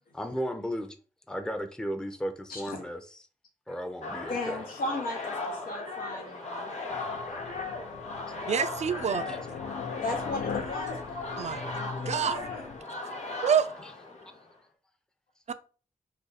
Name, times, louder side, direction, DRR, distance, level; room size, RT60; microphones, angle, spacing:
voice 1, 0.1-1.0 1.3-3.2 3.7-4.6 7.4-7.5 9.3-9.4 13.8-13.9, equal, 5° left, 0.5 m, -35 dB
voice 2, 2.5-2.8 4.3-6.7 10.0-11.4 11.9-12.6, left 2 dB, 90° left, 0.8 m, -36 dB
sound 1, 4.0-14.5, left 3 dB, 50° left, 1.0 m, -37 dB
sound 2, 6.9-12.8, left 6 dB, 65° left, 0.4 m, -40 dB
voice 3, 8.5-9.4 11.4-11.6 12.1-12.4 13.4-13.7 15.5-15.6, right 7 dB, 50° right, 0.4 m, -26 dB
2.6 x 2.3 x 3.9 m
supercardioid pair, 40°, 14 cm